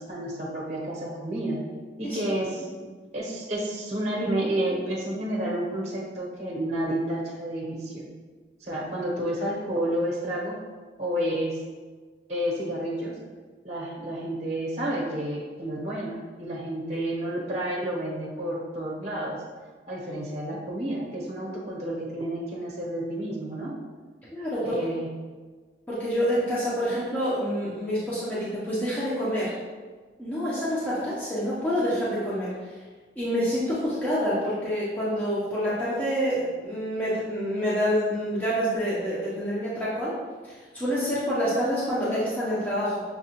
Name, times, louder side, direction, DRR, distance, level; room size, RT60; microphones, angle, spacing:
voice 1, 0.0-1.6 2.0-2.7 3.1-8.1 8.6-10.6 11.0-11.6 12.3-13.1 13.6-19.4 19.9-23.7 24.6-25.1, right 1 dB, 40° right, -4 dB, 0.8 m, -30 dB
voice 2, 24.3-24.8 25.9-29.5 30.2-32.8 33.2-40.1 40.4-43.0, equal, 10° left, -9 dB, 0.6 m, -27 dB
6.0 x 2.3 x 2.8 m, 1.4 s
head